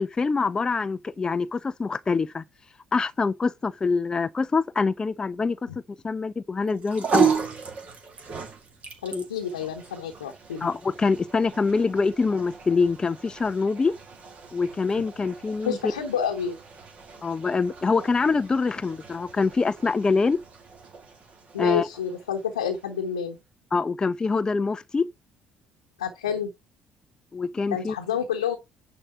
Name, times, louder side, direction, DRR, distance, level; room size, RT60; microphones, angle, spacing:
voice 1, 0.0-2.4 2.9-5.7 6.0-7.3 9.1-9.3 10.6-13.9 14.5-15.9 17.2-20.4 21.6-21.9 23.7-25.1 27.3-27.9, left 4 dB, 20° left, 0.4 m, -25 dB
sound 1, 6.6-23.1, right 6 dB, 40° right, 2.1 m, -34 dB
voice 2, 9.0-10.7 15.6-16.6 21.5-23.4 26.0-26.5 27.7-28.6, left 7 dB, 75° left, 1.0 m, -29 dB
9.8 x 3.8 x 5.5 m
figure-of-eight pair, 55°, 3 cm